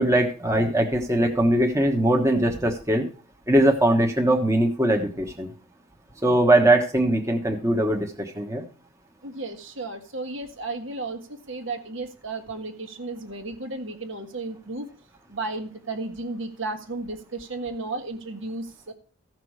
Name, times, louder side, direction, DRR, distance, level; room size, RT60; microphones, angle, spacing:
voice 1, 0.0-3.1 3.5-5.5 6.2-8.6, right 1 dB, 15° right, 2 dB, 1.2 m, -21 dB
voice 2, 9.2-11.2 11.5-14.9 15.3-18.9, right 2 dB, 60° right, 6 dB, 1.6 m, -33 dB
15.0 x 6.0 x 4.8 m, 0.38 s
head